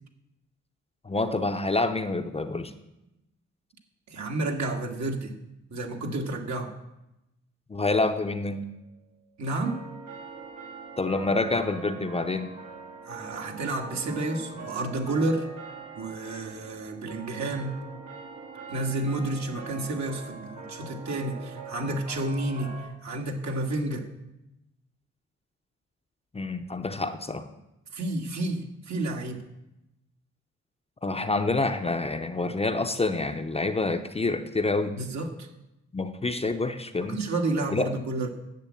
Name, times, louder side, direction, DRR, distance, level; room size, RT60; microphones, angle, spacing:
voice 1, 1.0-2.7 7.7-8.7 11.0-12.5 26.3-27.5 31.0-35.0 35.9-37.2 37.7-37.9, left 3 dB, 20° left, 7 dB, 0.7 m, -27 dB
voice 2, 4.1-5.3 5.7-6.7 9.4-9.8 13.1-15.5 16.0-17.7 18.7-24.1 27.9-29.4 34.9-35.5 37.0-38.3, right 2 dB, 70° right, 2 dB, 2.0 m, -30 dB
sound 1, 8.4-9.0 9.6-22.9, right 4 dB, 90° right, 3.6 m, -43 dB
10.5 x 7.6 x 8.5 m, 0.92 s
wide cardioid pair, 140°, 29 cm